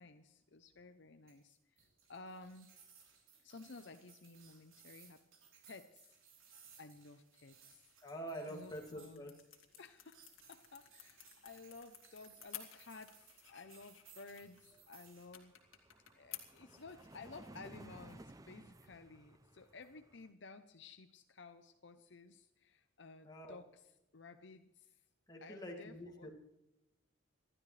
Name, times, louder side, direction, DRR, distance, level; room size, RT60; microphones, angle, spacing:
voice 1, 0.0-2.7 3.4-5.2 5.6-6.2 6.8-7.9 8.5-9.3 9.8-15.9 16.2-25.0 25.4-26.3, left 3 dB, 60° left, 8 dB, 0.7 m, -55 dB
sound 1, 1.3-15.3, right 6 dB, 80° right, 3.5 m, -63 dB
voice 2, 8.0-9.3 23.2-23.6 25.3-26.3, equal, 20° left, 0 dB, 2.3 m, -46 dB
sound 2, 8.6-20.0, left 12 dB, 80° left, 2.1 m, -57 dB
sound 3, 14.2-14.3 14.6-20.3, right 1 dB, 15° right, 0.5 m, -57 dB
27.0 x 12.0 x 3.3 m, 0.92 s
head